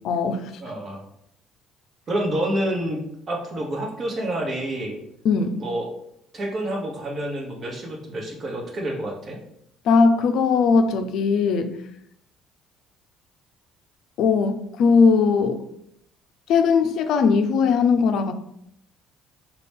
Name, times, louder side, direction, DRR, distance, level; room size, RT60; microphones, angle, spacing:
voice 1, 0.0-0.5 5.2-5.6 9.8-11.7 14.2-15.6 16.5-18.3, left 5 dB, 65° left, 7 dB, 0.4 m, -19 dB
voice 2, 0.6-1.0 2.1-5.0 5.5-5.9 6.3-9.4, right 1 dB, 45° right, 1 dB, 1.1 m, -28 dB
3.9 x 2.3 x 3.5 m, 0.73 s
hypercardioid pair, 60°, 0 cm